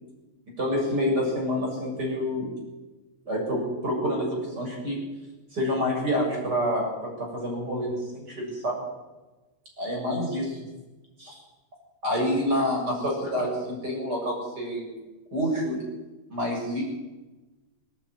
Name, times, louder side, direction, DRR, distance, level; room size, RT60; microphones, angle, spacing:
voice 1, 0.6-2.5 3.3-5.0 5.5-8.8 9.8-10.7 11.2-11.4 12.0-14.9 15.3-15.8 16.3-16.8, equal, 30° right, -1 dB, 7.5 m, -28 dB
26.0 x 10.5 x 9.8 m, 1.1 s
omnidirectional pair, 3.4 m